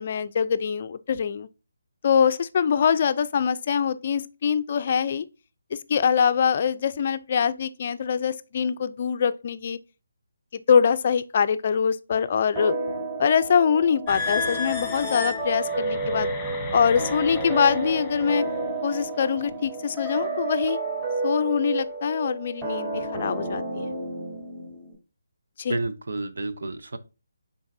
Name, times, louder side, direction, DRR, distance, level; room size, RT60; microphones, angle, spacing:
voice 1, 0.0-1.5 2.0-5.3 5.7-9.8 10.5-12.7 13.2-16.3 16.7-18.5 18.8-20.8 21.2-23.9 25.6-25.8, left 7 dB, 40° left, 0.4 m, -24 dB
sound 1, 12.6-24.9, right 2 dB, 25° right, 3.8 m, -31 dB
sound 2, 14.1-18.6 19.2-19.5 20.1-20.4, left 3 dB, 5° left, 1.5 m, -34 dB
voice 2, 25.7-27.0, right 2 dB, 75° right, 0.8 m, -30 dB
9.6 x 3.9 x 2.6 m
hypercardioid pair, 165°, 0 cm